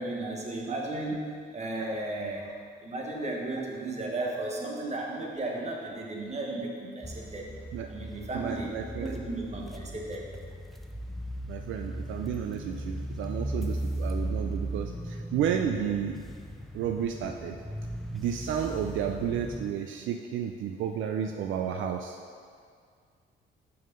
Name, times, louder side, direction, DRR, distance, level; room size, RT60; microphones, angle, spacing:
voice 1, 0.0-7.5 7.9-8.7 9.0-10.3, right 2 dB, 35° right, -1 dB, 1.3 m, -34 dB
sound 1, 7.0-19.7, right 1 dB, ahead, 0.5 m, -37 dB
voice 2, 8.3-9.2 11.5-16.2 16.7-17.6 18.1-22.2, right 8 dB, 75° right, 4 dB, 0.4 m, -32 dB
6.2 x 4.8 x 5.3 m, 2.1 s
cardioid pair, 90°, 20 cm